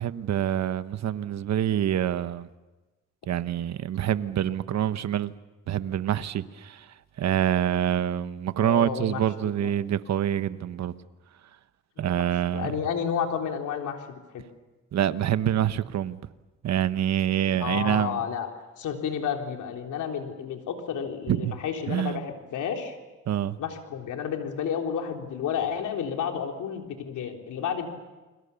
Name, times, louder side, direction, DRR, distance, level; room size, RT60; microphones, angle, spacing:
voice 1, 0.0-2.5 3.3-5.3 5.7-10.9 12.0-12.7 14.9-16.2 16.6-18.2 21.3-21.5 21.9-22.3 23.3-23.6, right 10 dB, 60° right, 1.2 m, -26 dB
voice 2, 8.6-9.7 12.0-12.1 12.5-14.4 17.6-18.5 18.8-23.0 23.6-27.9, left 7 dB, 80° left, 3.6 m, -31 dB
29.5 x 22.0 x 7.0 m
cardioid pair, 90°, 30 cm